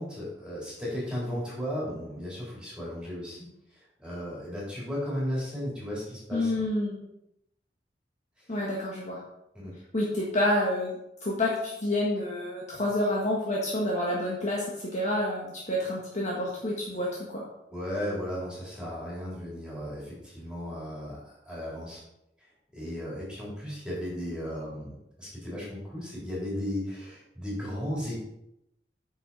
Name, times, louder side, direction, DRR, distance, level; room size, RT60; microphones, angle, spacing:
voice 1, 0.0-3.5 3.7-6.5 9.5-9.7 17.7-22.0 22.7-28.2, equal, 5° right, -7 dB, 3.7 m, -35 dB
voice 2, 6.3-7.1 8.5-9.2 9.9-14.6 14.9-17.4, left 1 dB, 45° left, -4 dB, 1.5 m, -28 dB
9.2 x 6.2 x 4.2 m, 0.83 s
head